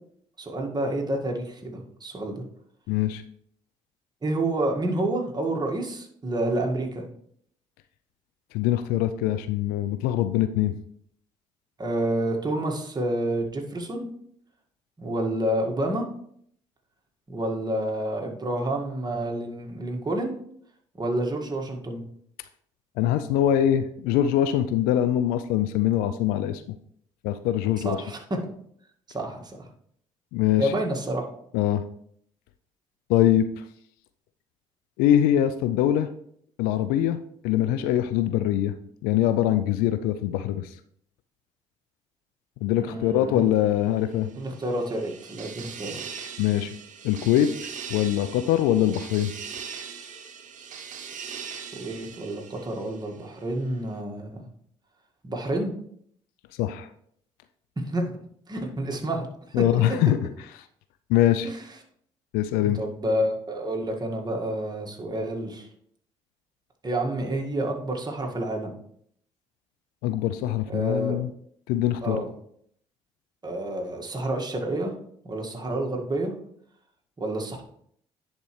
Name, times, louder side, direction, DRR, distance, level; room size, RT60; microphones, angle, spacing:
voice 1, 0.4-2.4 4.2-7.1 11.8-14.1 15.0-16.1 17.3-20.3 21.0-22.0 27.8-28.2 29.1-29.6 30.6-31.2 42.8-43.4 44.4-46.0 51.7-54.4 55.2-55.7 57.9-58.1 58.5-59.3 59.7-59.8 61.4-61.6 62.7-65.7 66.8-68.7 70.7-71.2 72.0-72.3 73.4-74.9 75.2-76.4 77.2-77.6, right 1 dB, 25° right, 1 dB, 1.8 m, -29 dB
voice 2, 2.9-3.2 8.5-10.8 23.0-26.8 27.2-28.0 30.3-30.7 31.5-31.8 33.1-33.5 35.0-36.1 36.6-37.2 37.4-38.7 39.0-40.7 42.6-44.3 46.4-46.7 47.0-47.5 47.9-49.3 56.6-56.9 59.5-60.3 61.1-61.5 62.3-62.8 70.0-71.3 71.7-72.2, left 12 dB, 75° left, 11 dB, 0.4 m, -23 dB
sound 1, 44.1-53.3, right 7 dB, 60° right, 1.0 m, -40 dB
10.5 x 4.4 x 3.2 m, 0.66 s
hypercardioid pair, 55°, 15 cm